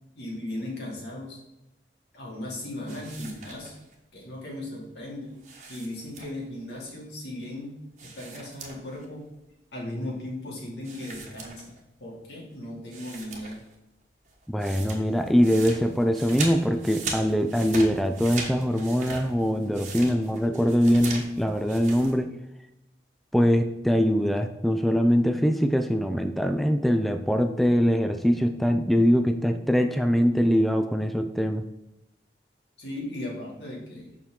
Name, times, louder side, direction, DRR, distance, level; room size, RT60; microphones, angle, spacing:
voice 1, 0.1-1.4 2.1-3.8 4.1-5.4 5.7-9.3 9.7-11.7 12.0-13.6 32.8-34.2, left 1 dB, 80° left, -3 dB, 2.4 m, -37 dB
sound 1, 2.9-3.9 5.4-6.6 8.0-9.1 9.3-9.4 10.8-12.0 12.5-12.6 12.9-13.7 14.0-22.1, right 3 dB, 40° right, 1.2 m, -39 dB
voice 2, 14.5-22.3 23.3-31.6, equal, ahead, 6 dB, 0.3 m, -23 dB
6.9 x 6.0 x 3.7 m, 0.90 s
head